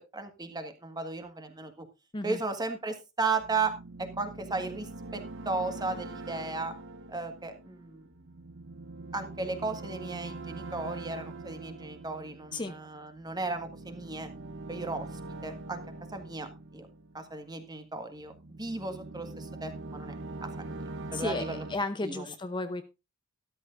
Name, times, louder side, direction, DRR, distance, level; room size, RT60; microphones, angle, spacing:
voice 1, 0.0-1.8 2.2-3.7 4.0-6.7 7.1-8.1 9.1-14.3 14.7-15.1 15.4-15.8 16.1-16.5 16.7-16.9 17.1-20.1 20.4-20.8 21.1-21.6 22.0-22.3, right 3 dB, 20° right, 7 dB, 1.7 m, -35 dB
sound 1, 3.4-17.7 18.2-21.8, right 2 dB, 60° right, 0.9 m, -43 dB
voice 2, 21.1-22.8, left 2 dB, 20° left, 9 dB, 0.7 m, -33 dB
13.0 x 13.0 x 2.6 m, 0.26 s
head